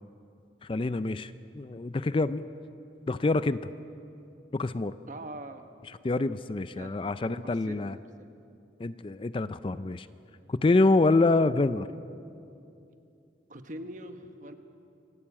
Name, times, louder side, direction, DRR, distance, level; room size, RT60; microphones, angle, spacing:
voice 1, 0.7-2.4 3.1-3.7 4.5-4.9 6.0-8.0 8.8-10.1 10.5-11.9, left 2 dB, 30° left, 14 dB, 0.4 m, -26 dB
voice 2, 5.1-5.6 6.7-8.2 13.5-14.5, right 1 dB, 45° right, 7 dB, 1.2 m, -43 dB
26.5 x 12.0 x 8.6 m, 2.6 s
head